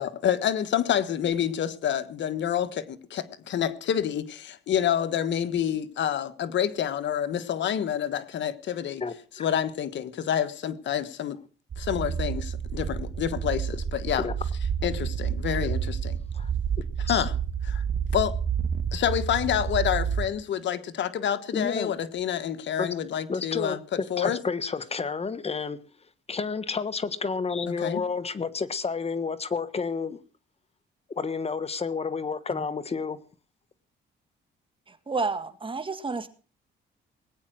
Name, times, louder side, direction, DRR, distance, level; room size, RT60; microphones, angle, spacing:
voice 1, 0.0-9.0 9.4-11.4 11.8-14.3 14.8-16.2 17.1-17.3 17.7-17.8 18.1-18.4 18.9-23.8 24.1-24.4 27.8-28.0, left 9 dB, 65° left, 1.4 m, -28 dB
voice 2, 9.0-9.5 14.2-14.3 16.3-16.5 17.1-17.3 21.5-21.9 22.8-22.9 23.3-25.8 26.3-30.2 31.1-33.2, left 5 dB, 30° left, 1.3 m, -30 dB
sound 1, 11.7-20.3, right 7 dB, 45° right, 1.5 m, -29 dB
voice 3, 34.9-36.3, right 4 dB, 25° right, 2.0 m, -31 dB
20.0 x 9.0 x 6.3 m
cardioid pair, 90°, 20 cm